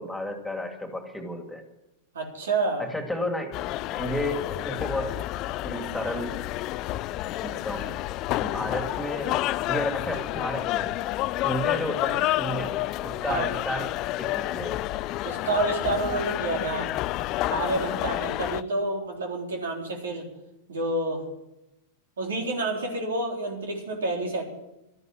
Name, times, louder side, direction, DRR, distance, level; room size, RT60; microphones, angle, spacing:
voice 1, 0.0-1.6 2.9-3.6 3.9-4.4 4.6-5.1 5.6-6.3 7.4-8.0 8.4-9.3 9.7-11.0 11.4-12.7 13.0-13.9 14.2-14.7, left 1 dB, 5° left, 4 dB, 2.6 m, -32 dB
voice 2, 2.1-2.8 13.3-13.4 15.2-16.9 17.5-20.3 20.7-21.2 22.2-24.5, right 2 dB, 75° right, 1 dB, 3.8 m, -29 dB
sound 1, 3.5-18.6, left 16 dB, 45° left, 0.5 m, -29 dB
13.0 x 11.0 x 9.0 m, 0.92 s
hypercardioid pair, 95°, 0 cm